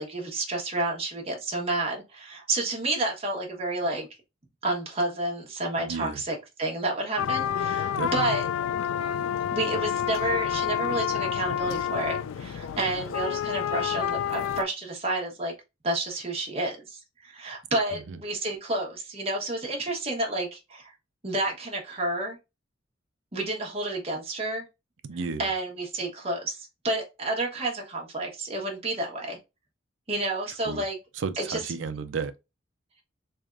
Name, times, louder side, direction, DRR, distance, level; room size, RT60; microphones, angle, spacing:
voice 1, 0.0-4.1 4.6-8.5 9.5-15.5 15.8-20.9 21.2-22.4 23.3-24.7 25.4-26.6 26.8-29.4 30.1-31.0 31.4-31.6, right 2 dB, 30° right, 1.1 m, -30 dB
voice 2, 5.8-6.2 8.0-8.1 17.9-18.2 25.1-25.5 30.7-30.8 31.2-32.3, right 5 dB, 70° right, 0.5 m, -33 dB
sound 1, 7.2-14.6, left 9 dB, 90° left, 0.3 m, -29 dB
3.5 x 3.4 x 2.4 m
head